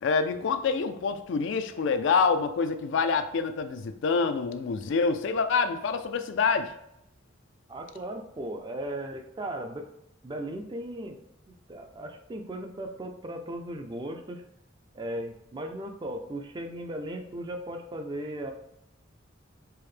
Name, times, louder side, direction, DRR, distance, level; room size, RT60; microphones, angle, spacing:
voice 1, 0.0-6.7, left 5 dB, 65° left, 8 dB, 0.3 m, -26 dB
voice 2, 7.7-9.9 10.2-11.2 11.5-14.4 14.9-18.5, right 1 dB, 25° right, 5 dB, 0.4 m, -37 dB
4.6 x 2.1 x 3.2 m, 0.81 s
head